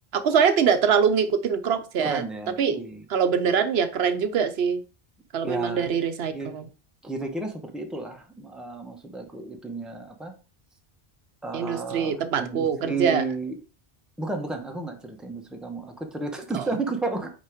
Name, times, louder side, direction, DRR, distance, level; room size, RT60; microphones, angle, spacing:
voice 1, 0.1-2.2 2.6-2.8 3.1-4.8 5.3-6.7 11.5-13.2 16.5-16.7, right 7 dB, 80° right, 10 dB, 0.9 m, -23 dB
voice 2, 2.0-3.0 5.4-5.9 6.3-6.5 7.0-10.3 11.4-13.6 14.2-17.3, right 3 dB, ahead, 3 dB, 0.9 m, -32 dB
5.4 x 4.8 x 4.9 m, 0.36 s
omnidirectional pair, 1.1 m